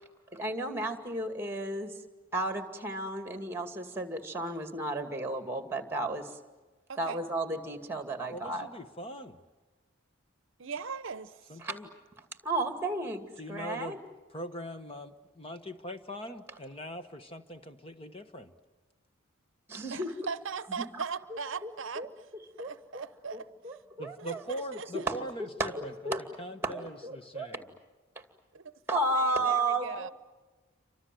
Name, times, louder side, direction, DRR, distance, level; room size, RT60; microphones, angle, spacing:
voice 1, 0.3-2.0 2.3-6.4 7.0-8.7 11.6-11.7 12.4-14.0 19.7-20.1 20.8-21.0 21.6-22.1 22.6-24.4 24.9-25.2 25.6-26.2 26.6-27.5 28.2-28.3 28.9-30.1, right 2 dB, 10° right, 7 dB, 2.3 m, -33 dB
voice 2, 8.3-9.4 11.5-11.9 13.4-14.0 14.3-18.5 24.0-25.9 26.4-27.6, equal, 25° left, 8 dB, 1.1 m, -41 dB
voice 3, 10.6-11.3 19.9-22.0 22.6-23.5 24.2-25.1 28.5-28.7 29.1-30.1, right 5 dB, 60° right, 14 dB, 0.8 m, -39 dB
29.5 x 25.0 x 7.7 m, 1.3 s
head